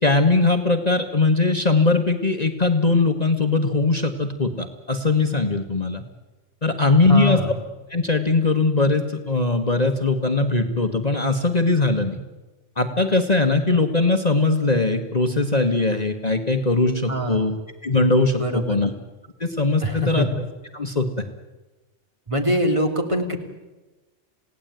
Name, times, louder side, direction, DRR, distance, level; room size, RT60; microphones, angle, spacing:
voice 1, 0.0-6.0 6.6-7.4 7.9-12.2 12.8-17.6 17.8-18.4 18.7-18.9 19.4-20.3 20.7-21.2, left 3 dB, 35° left, 5 dB, 1.5 m, -20 dB
voice 2, 7.1-7.6 17.1-17.5 18.4-18.8 19.8-20.3 22.3-23.4, equal, 25° right, 3 dB, 2.9 m, -24 dB
28.5 x 17.5 x 9.1 m, 1.1 s
omnidirectional pair, 1.2 m